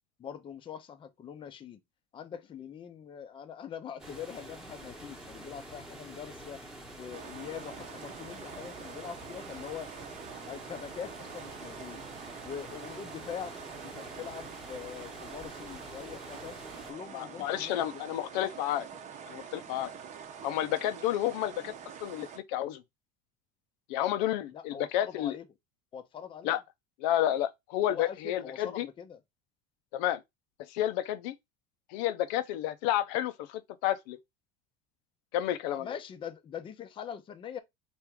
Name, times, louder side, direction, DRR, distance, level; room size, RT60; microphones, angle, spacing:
voice 1, 0.2-1.8 2.1-6.7 7.0-9.9 10.5-12.0 12.4-13.6 13.8-16.6 16.9-18.5 24.5-25.4 25.9-26.6 27.9-29.2 35.7-37.6, left 8 dB, 25° left, 0.5 m, -43 dB
sound 1, 4.0-16.9, right 1 dB, 5° right, 1.0 m, -47 dB
sound 2, 7.1-22.4, right 7 dB, 35° right, 0.7 m, -46 dB
voice 2, 17.1-18.8 19.3-19.9 20.4-21.7 22.0-22.8 23.9-25.4 26.4-26.6 27.0-28.9 29.9-30.2 30.7-31.4 31.9-34.2 35.3-35.9, left 12 dB, 85° left, 0.6 m, -30 dB
3.5 x 2.5 x 4.5 m
cardioid pair, 140°, 21 cm